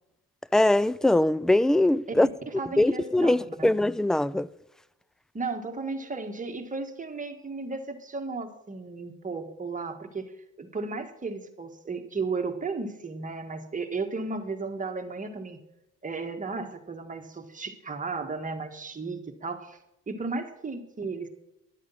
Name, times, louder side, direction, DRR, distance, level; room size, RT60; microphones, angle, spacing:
voice 1, 0.5-2.3 2.8-4.5, left 1 dB, ahead, 0.3 m, -22 dB
voice 2, 2.2-3.8 5.3-10.3 10.6-15.6 16.0-19.8 20.1-21.3, right 3 dB, 25° right, 1.6 m, -34 dB
12.0 x 8.3 x 5.6 m
cardioid pair, 90°, 30 cm